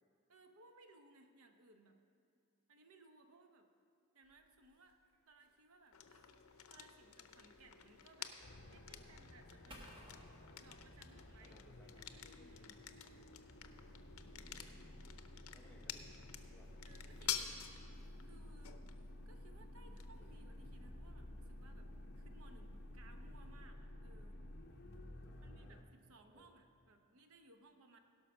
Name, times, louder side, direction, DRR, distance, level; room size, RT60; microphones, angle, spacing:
voice 1, 0.3-2.0 2.7-3.7 4.1-5.0 5.3-6.4 6.7-8.3 8.7-11.6 12.0-12.8 16.8-17.4 17.6-18.9 19.2-24.4 25.4-28.0, right 2 dB, 80° right, 5 dB, 0.9 m, -64 dB
sound 1, 4.2-12.6, equal, 20° right, 1.5 m, -64 dB
sound 2, 5.9-23.7, left 9 dB, 80° left, 0.6 m, -51 dB
sound 3, 8.4-25.8, left 1 dB, 50° left, 0.9 m, -53 dB
voice 2, 11.4-12.0 14.1-14.9 15.5-16.1 16.5-16.7 17.2-17.5 25.2-25.8 26.3-26.6, equal, 5° left, -1 dB, 1.0 m, -67 dB
17.0 x 5.7 x 6.0 m, 2.4 s
head